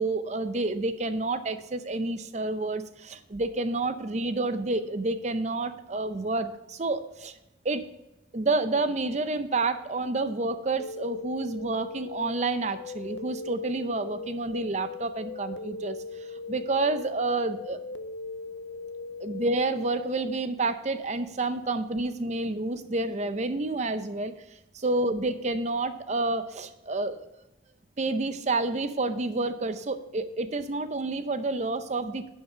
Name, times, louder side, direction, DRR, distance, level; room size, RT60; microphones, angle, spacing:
voice 1, 0.0-7.3 7.6-7.8 8.3-16.0 16.5-17.8 19.2-24.3 24.7-27.2 28.0-32.3, right 2 dB, 40° right, 11 dB, 0.6 m, -29 dB
sound 1, 10.8-20.3, left 4 dB, 80° left, 0.6 m, -39 dB
10.5 x 5.7 x 5.6 m, 0.91 s
head